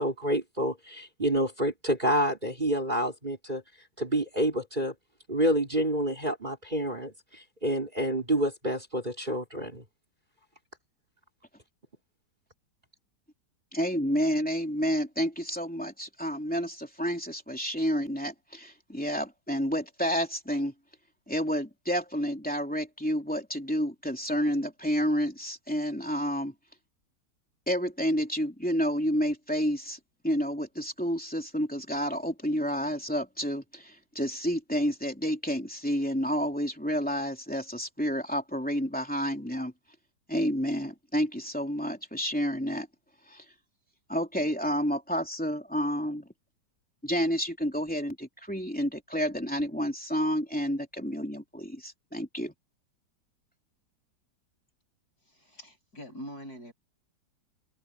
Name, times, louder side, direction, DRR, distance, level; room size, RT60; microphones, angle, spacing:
voice 1, 0.0-3.6 4.0-4.9 5.3-9.8, right 1 dB, 25° right, 4.9 m, -28 dB
voice 2, 13.7-20.7 21.3-26.5 27.7-30.0 30.2-39.7 40.3-42.9 43.3-43.4 44.1-46.3 47.0-52.5, equal, 5° left, 3.2 m, -30 dB
voice 3, 55.4-56.7, equal, 60° left, 8.5 m, -43 dB
open air
omnidirectional pair, 1.9 m